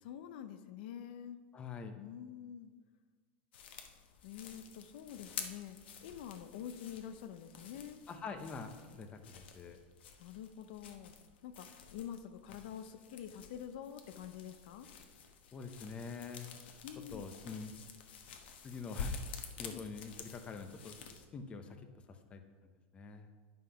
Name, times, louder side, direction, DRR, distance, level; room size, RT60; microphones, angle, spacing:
voice 1, 0.0-1.4 2.0-2.7 4.2-8.0 10.2-11.1 11.4-14.9 16.8-17.3 19.7-19.8, left 9 dB, 65° left, 10 dB, 0.6 m, -47 dB
voice 2, 1.5-2.0 8.1-9.8 15.5-16.5 17.1-17.7 18.6-19.2 19.6-21.0 21.3-22.4 22.9-23.3, left 5 dB, 20° left, 7 dB, 0.7 m, -45 dB
sound 1, 3.5-21.3, left 5 dB, 90° left, 1.1 m, -49 dB
9.8 x 5.6 x 5.6 m, 1.5 s
supercardioid pair, 155°, 6 cm